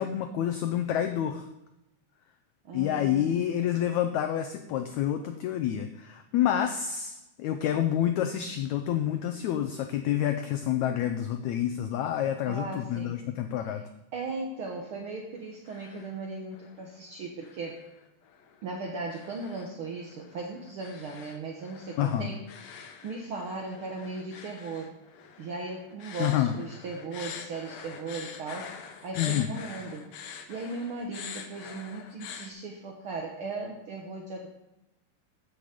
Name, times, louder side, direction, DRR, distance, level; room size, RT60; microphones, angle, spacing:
voice 1, 0.0-1.5 2.7-13.8 22.0-22.3 26.2-26.6 29.2-29.5, left 10 dB, 85° left, 7 dB, 1.6 m, -28 dB
voice 2, 2.6-3.4 12.5-13.2 13.6-13.8 14.1-17.8 18.6-24.9 25.4-28.7 29.0-34.5, right 3 dB, 75° right, 0 dB, 1.2 m, -37 dB
sound 1, 15.4-16.2 16.5-17.0 17.4-32.5, left 7 dB, 65° left, 1.9 m, -45 dB
14.5 x 7.0 x 5.1 m, 0.94 s
omnidirectional pair, 4.0 m